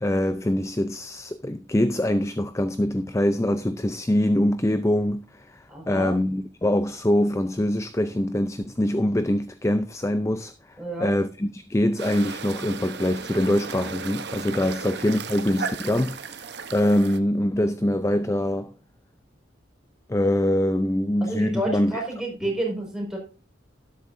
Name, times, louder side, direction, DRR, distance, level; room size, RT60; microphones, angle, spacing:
voice 1, 0.0-16.4 16.7-18.7 20.1-22.0, left 1 dB, 15° left, 0.5 m, -24 dB
voice 2, 5.7-6.1 10.8-11.1 21.2-23.2, right 1 dB, 5° right, 5.2 m, -30 dB
sound 1, 12.0-17.2, right 5 dB, 60° right, 1.0 m, -35 dB
12.5 x 11.0 x 2.7 m
head